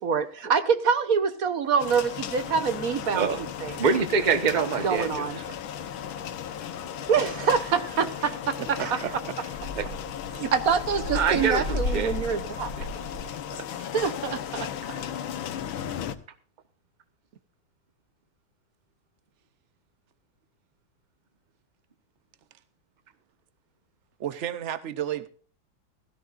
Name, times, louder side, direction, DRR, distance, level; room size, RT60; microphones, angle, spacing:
voice 1, 0.0-3.3 3.6-3.8 4.8-5.4 7.1-8.8 10.3-12.7 13.9-14.7, right 6 dB, 55° right, 11 dB, 1.1 m, -25 dB
sound 1, 1.8-16.2, left 9 dB, 90° left, 1.7 m, -36 dB
sound 2, 2.7-13.4, left 2 dB, 55° left, 1.8 m, -38 dB
voice 2, 3.8-5.6 8.8-9.0 9.8-9.9 11.1-12.2 12.8-12.9 13.5-13.6, right 5 dB, 30° right, 10 dB, 0.9 m, -26 dB
voice 3, 8.6-9.3 24.2-25.3, right 10 dB, 80° right, 13 dB, 0.6 m, -32 dB
16.5 x 14.0 x 2.5 m, 0.42 s
omnidirectional pair, 2.1 m